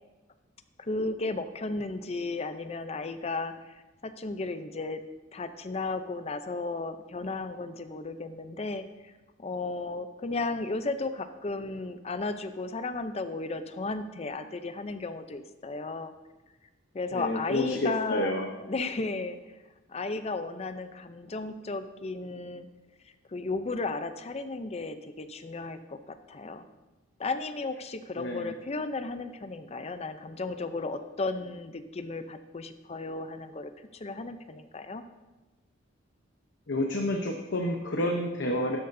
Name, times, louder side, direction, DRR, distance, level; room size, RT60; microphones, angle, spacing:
voice 1, 0.8-5.0 5.3-9.1 9.4-16.1 16.9-18.3 18.6-19.4 19.9-22.7 23.3-26.7 27.2-35.0, left 3 dB, 30° left, 10 dB, 0.5 m, -34 dB
voice 2, 17.1-18.5 28.2-28.5 36.7-38.8, left 1 dB, 60° left, 2 dB, 0.8 m, -29 dB
12.0 x 10.5 x 2.7 m, 1.1 s
head